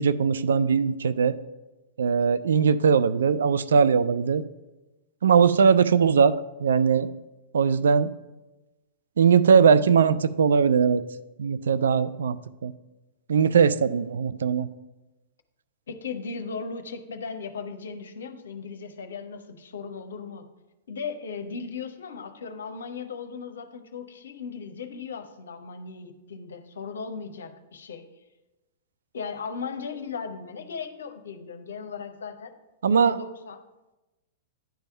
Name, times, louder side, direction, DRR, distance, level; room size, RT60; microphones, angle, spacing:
voice 1, 0.0-1.3 2.0-4.4 5.2-6.4 6.6-7.1 7.5-8.1 9.2-11.0 11.4-12.4 12.6-12.7 13.3-14.7 32.8-33.2, right 6 dB, 65° right, 13 dB, 0.3 m, -20 dB
voice 2, 15.9-20.4 20.9-28.1 29.1-32.6 32.9-33.6, left 5 dB, 65° left, 8 dB, 0.7 m, -37 dB
10.5 x 3.5 x 5.5 m, 1.1 s
figure-of-eight pair, 105°, 0 cm